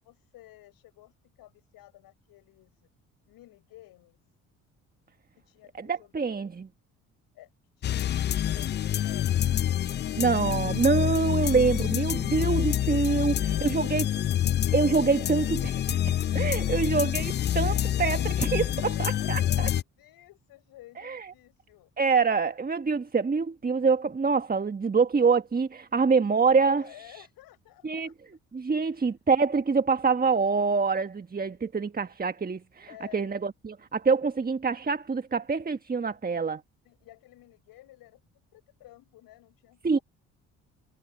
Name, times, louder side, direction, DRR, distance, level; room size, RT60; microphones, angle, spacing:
voice 1, 0.0-2.9 3.3-4.2 5.4-6.2 7.3-8.7 9.0-9.7 13.2-14.7 16.4-17.2 18.8-21.9 26.8-28.1 28.7-29.1 32.9-33.3 36.8-38.2 38.5-40.0, left 16 dB, 70° left, 6.6 m, -53 dB
voice 2, 5.9-6.7 10.2-14.0 14.7-19.7 21.0-21.2 22.0-26.9 27.8-28.1 28.5-32.9 33.1-36.6 39.8-40.0, right 4 dB, 25° right, 1.4 m, -25 dB
sound 1, 7.8-19.8, left 11 dB, 30° left, 0.4 m, -27 dB
hypercardioid pair, 50°, 37 cm